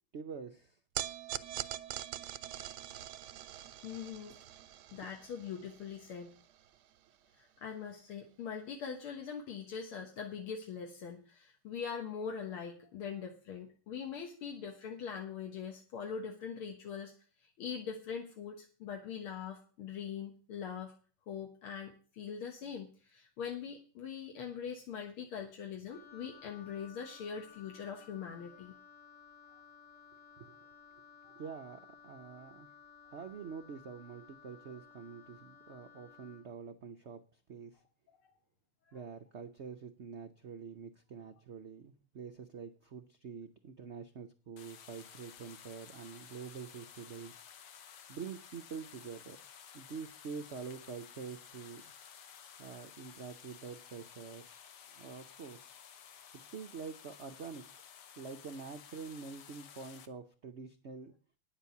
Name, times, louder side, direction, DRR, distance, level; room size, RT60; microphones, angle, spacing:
voice 1, 0.1-0.8 30.4-30.6 31.3-32.7 33.1-37.8 38.9-47.3 48.1-49.4 49.7-51.8 52.6-54.4 54.9-55.7 56.4-57.6 58.2-61.1, right 6 dB, 90° right, 7 dB, 0.6 m, -46 dB
sound 1, 1.0-7.4, right 12 dB, 65° right, 1.1 m, -44 dB
voice 2, 3.8-4.3 4.9-6.3 7.4-17.1 17.4-20.9 21.3-28.7 38.2-38.3, left 7 dB, 80° left, 2 dB, 2.3 m, -42 dB
Wind instrument woodwind instrument, 25.9-36.5, left 6 dB, 40° left, 2.1 m, -57 dB
sound 2, 44.6-60.1, left 8 dB, 60° left, 1.3 m, -54 dB
9.7 x 7.4 x 8.3 m, 0.39 s
omnidirectional pair, 2.3 m